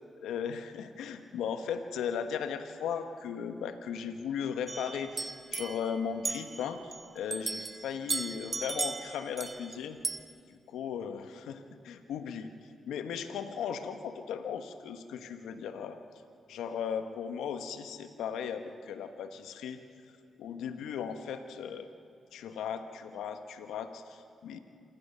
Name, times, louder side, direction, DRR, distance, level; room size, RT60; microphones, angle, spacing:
voice 1, 0.2-10.0 10.5-12.5 12.9-16.0 16.5-19.8 20.4-21.9 22.3-24.6, left 7 dB, 85° left, 8 dB, 1.3 m, -37 dB
sound 1, 4.7-7.1 7.3-9.8 10.0-10.2, right 3 dB, 35° right, 1.2 m, -36 dB
27.0 x 15.0 x 6.9 m, 2.4 s
supercardioid pair, 55°, 0 cm